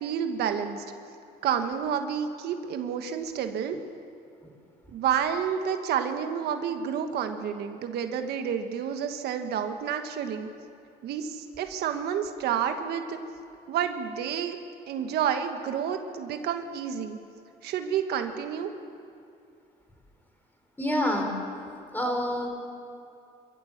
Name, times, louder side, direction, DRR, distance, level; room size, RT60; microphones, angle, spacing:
voice 1, 0.0-0.8 1.4-3.8 4.9-10.5 11.0-13.2 13.7-14.6 14.9-17.2 17.6-18.7, right 8 dB, 75° right, 7 dB, 1.3 m, -29 dB
voice 2, 20.8-21.3 21.9-22.5, left 1 dB, 10° left, 2 dB, 3.9 m, -27 dB
25.5 x 14.5 x 7.2 m, 2.5 s
cardioid pair, 110°, 17 cm